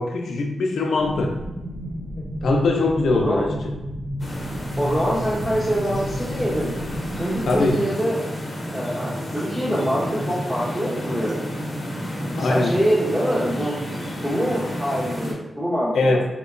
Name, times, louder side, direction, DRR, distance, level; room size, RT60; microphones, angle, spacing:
voice 1, 0.0-1.4 2.4-3.6 7.5-7.9 12.4-12.8 15.9-16.3, left 2 dB, 80° left, 2 dB, 0.4 m, -21 dB
sound 1, 1.0-7.7, equal, 45° right, 0.6 m, -31 dB
sound 2, 4.2-15.3, equal, 45° left, 0.7 m, -31 dB
voice 2, 4.8-6.7 7.2-8.2 8.7-11.3 12.4-13.7 14.2-16.1, equal, 15° right, -11 dB, 1.0 m, -24 dB
2.8 x 2.1 x 2.4 m, 0.98 s
cardioid pair, 60°, 0 cm